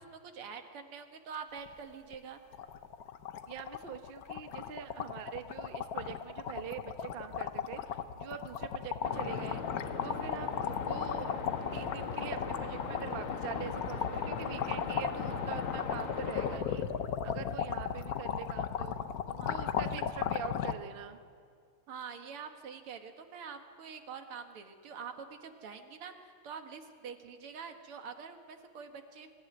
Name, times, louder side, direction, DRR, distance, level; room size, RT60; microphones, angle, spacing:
voice 1, 0.0-2.4 19.4-19.6 21.9-29.3, right 6 dB, 85° right, 6 dB, 2.5 m, -45 dB
sound 1, 1.7-1.8 2.1-2.2 2.5-20.7, left 8 dB, 60° left, 1.1 m, -36 dB
voice 2, 3.5-7.8 8.2-9.6 10.0-11.4 11.7-16.9 17.2-21.2, right 7 dB, 40° right, 8 dB, 0.8 m, -44 dB
sound 2, 9.0-16.6, left 4 dB, 75° left, 2.8 m, -40 dB
23.0 x 14.5 x 9.2 m, 2.3 s
omnidirectional pair, 2.4 m